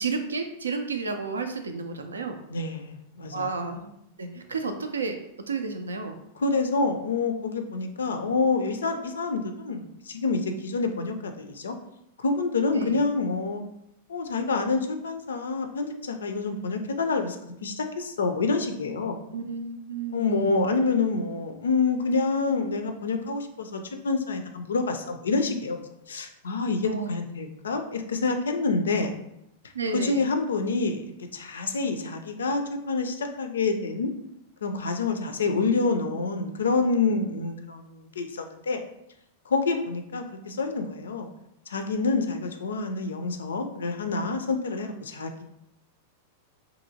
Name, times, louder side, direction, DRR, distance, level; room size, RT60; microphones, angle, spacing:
voice 1, 0.0-2.3 3.3-3.9 4.2-5.2 5.5-6.1 12.7-13.0 19.3-20.7 26.8-27.1 29.7-30.3, right 4 dB, 80° right, 6 dB, 0.3 m, -32 dB
voice 2, 2.5-3.5 6.4-11.7 12.2-13.6 14.1-17.4 17.6-19.2 20.1-29.2 29.9-34.1 34.6-38.8 39.5-41.3 41.7-45.4, left 3 dB, 75° left, 6 dB, 0.3 m, -27 dB
2.7 x 2.5 x 2.7 m, 0.79 s
figure-of-eight pair, 95°, 0 cm